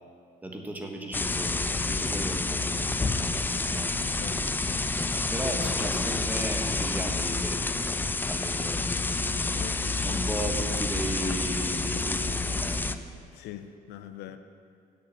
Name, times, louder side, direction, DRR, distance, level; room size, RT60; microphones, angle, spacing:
voice 1, 0.4-3.9 5.3-7.6 8.3-8.8 10.0-12.8, right 1 dB, 10° right, 2 dB, 1.4 m, -35 dB
sound 1, 1.1-13.0, left 3 dB, 10° left, 0.4 m, -29 dB
voice 2, 4.1-4.4 9.5-10.2 13.3-14.4, left 11 dB, 80° left, 10 dB, 0.6 m, -42 dB
8.0 x 6.9 x 8.3 m, 2.4 s
cardioid pair, 110°, 17 cm